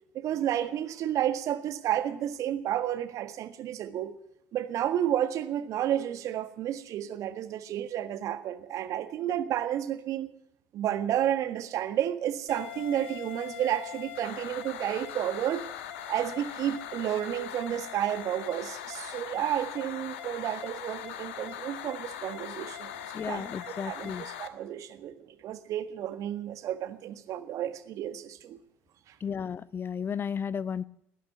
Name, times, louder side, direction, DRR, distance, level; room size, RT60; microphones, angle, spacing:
voice 1, 0.1-4.1 4.5-10.3 10.7-15.7 16.1-28.6 29.1-29.2, right 11 dB, 55° right, 10 dB, 1.6 m, -31 dB
sound 1, 12.5-24.5, left 10 dB, 75° left, 1.3 m, -41 dB
voice 2, 23.1-24.2 29.2-30.8, left 7 dB, 35° left, 19 dB, 0.7 m, -33 dB
18.0 x 9.3 x 8.3 m, 0.78 s
hypercardioid pair, 60°, 7 cm